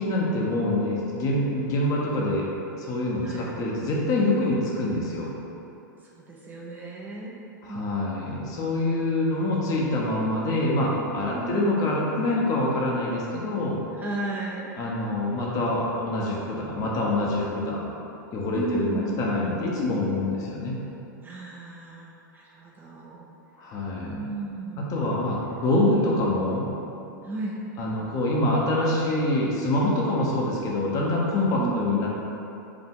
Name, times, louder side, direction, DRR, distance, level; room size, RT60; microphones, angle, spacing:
voice 1, 0.0-2.5 2.8-5.3 7.6-13.8 14.8-17.8 18.3-20.8 23.6-24.2 24.8-26.7 27.8-32.1, left 1 dB, 35° left, -3 dB, 0.9 m, -25 dB
voice 2, 3.2-3.6 6.1-7.3 7.7-8.3 11.3-11.7 13.9-14.7 17.6-17.9 18.5-19.3 21.2-23.3 23.9-24.9 27.2-27.6 31.5-32.0, right 3 dB, 15° right, -4 dB, 0.6 m, -34 dB
4.8 x 2.6 x 3.6 m, 2.8 s
hypercardioid pair, 115°, 11 cm